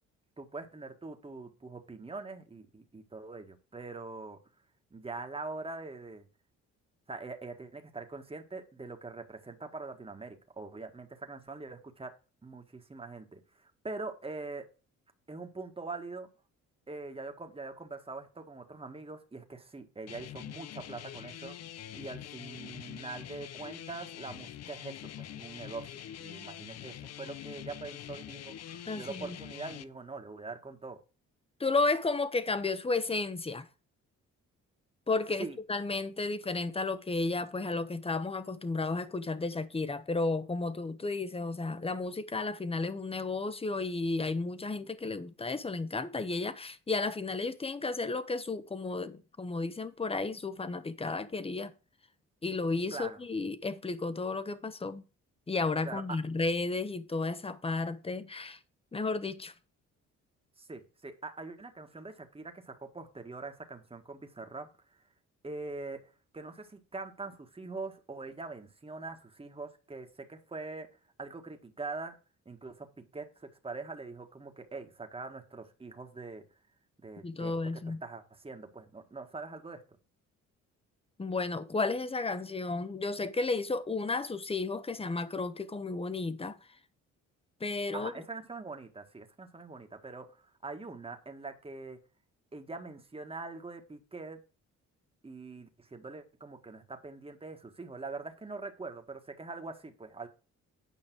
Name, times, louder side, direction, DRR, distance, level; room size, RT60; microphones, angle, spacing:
voice 1, 0.4-4.4 4.9-6.3 7.1-12.1 12.4-14.7 15.3-16.3 16.9-21.6 21.9-31.0 35.4-35.6 52.9-53.2 55.8-56.0 60.6-64.7 65.4-66.0 66.3-70.9 71.2-72.2 72.4-76.4 77.0-79.8 87.9-90.4 90.6-92.0 92.5-94.4 95.2-100.3, right 3 dB, 20° right, 1.6 m, -43 dB
sound 1, 20.1-29.8, left 11 dB, 55° left, 0.7 m, -45 dB
voice 2, 28.9-29.4 31.6-33.7 35.1-51.7 52.4-55.0 55.5-58.6 58.9-59.5 77.2-78.0 81.2-86.6 87.6-88.1, left 3 dB, 20° left, 1.0 m, -33 dB
9.4 x 5.3 x 6.1 m
cardioid pair, 90°, 30 cm